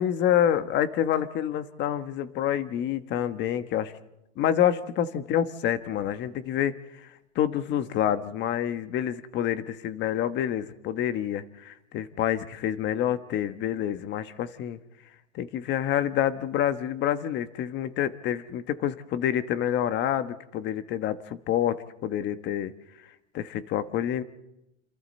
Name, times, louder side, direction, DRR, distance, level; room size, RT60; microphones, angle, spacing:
voice 1, 0.0-3.9 4.4-7.1 7.3-14.8 15.3-22.7 23.3-24.2, left 10 dB, 30° left, 11 dB, 1.2 m, -27 dB
27.5 x 27.0 x 4.3 m, 0.89 s
supercardioid pair, 155°, 35 cm